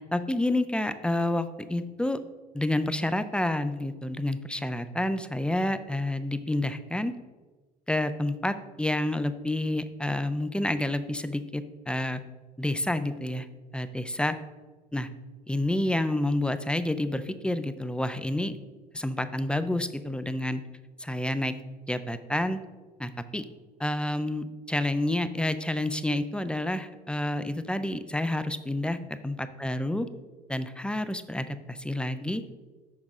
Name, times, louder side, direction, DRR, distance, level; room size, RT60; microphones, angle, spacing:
voice 1, 0.1-2.2 2.5-7.1 7.9-12.2 12.6-13.5 13.7-14.4 14.9-15.1 15.5-18.5 18.9-20.6 21.0-21.6 21.9-22.6 23.0-23.4 23.8-29.0 29.2-30.1 30.5-32.4, left 1 dB, 5° left, 11 dB, 0.6 m, -29 dB
7.7 x 5.8 x 4.9 m, 1.3 s
figure-of-eight pair, 60°, 21 cm